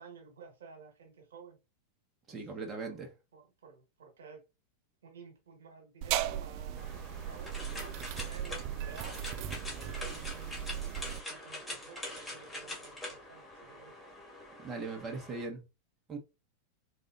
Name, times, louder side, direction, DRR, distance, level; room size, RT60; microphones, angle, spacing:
voice 1, 0.0-1.6 2.8-3.0 3.3-4.4 5.0-10.6 11.3-13.9, right 5 dB, 65° right, 1.6 m, -53 dB
voice 2, 2.3-3.1 14.6-15.6 16.1-16.2, right 4 dB, 20° right, 1.1 m, -39 dB
sound 1, 6.0-11.2, right 11 dB, 45° right, 0.4 m, -37 dB
sound 2, 6.8-15.5, left 1 dB, 5° left, 1.9 m, -44 dB
4.0 x 3.9 x 2.5 m
figure-of-eight pair, 90°, 0 cm